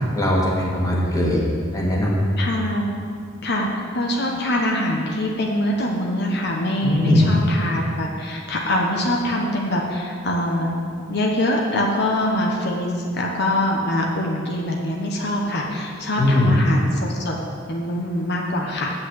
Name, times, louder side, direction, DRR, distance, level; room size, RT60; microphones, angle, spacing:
voice 1, 0.1-1.4 1.7-2.2 6.8-7.4 16.2-16.5, left 1 dB, 20° left, -3 dB, 1.6 m, -19 dB
voice 2, 2.4-2.8 3.4-10.8 11.1-17.4 17.7-18.9, left 1 dB, 60° left, -1 dB, 1.0 m, -24 dB
8.0 x 5.9 x 8.0 m, 2.2 s
head